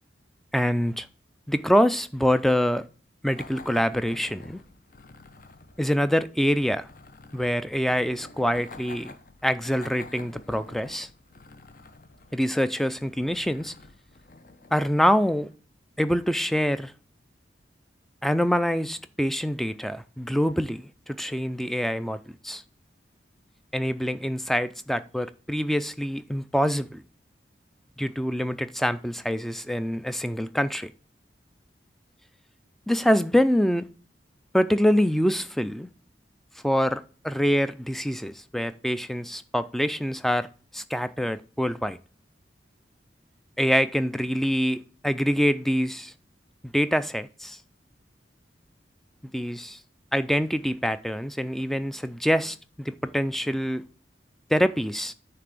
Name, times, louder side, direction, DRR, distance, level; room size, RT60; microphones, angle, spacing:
voice 1, 0.5-1.1 1.5-2.8 3.2-4.6 5.8-6.9 7.3-9.2 9.4-11.1 12.3-13.7 14.7-15.5 16.0-16.9 18.2-22.6 23.7-27.0 28.0-30.9 32.9-33.9 34.5-35.9 36.6-40.5 40.7-42.0 43.6-46.1 46.7-47.6 49.3-49.8 50.1-53.9 54.5-55.1, equal, ahead, 0.3 m, -25 dB
sound 1, 3.4-15.5, left 3 dB, 50° left, 0.7 m, -49 dB
9.5 x 3.4 x 6.6 m
head